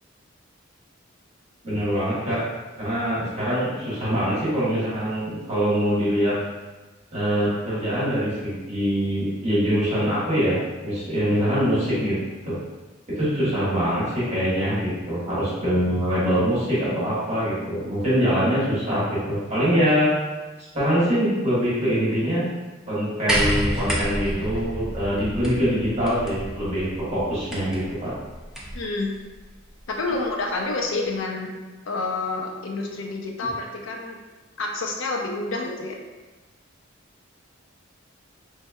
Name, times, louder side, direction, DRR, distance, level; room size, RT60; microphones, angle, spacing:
voice 1, 1.6-2.4 2.8-6.4 7.1-12.1 12.4-12.5 13.1-20.2 20.7-22.5 22.9-28.1, equal, 30° right, -10 dB, 1.4 m, -23 dB
sound 1, 23.3-28.9 30.0-30.1, right 1 dB, 5° right, 0.4 m, -29 dB
voice 2, 28.7-29.1 29.9-31.5 31.9-34.2 34.6-36.0, left 3 dB, 65° left, 0 dB, 0.6 m, -28 dB
4.2 x 3.2 x 2.3 m, 1.2 s
head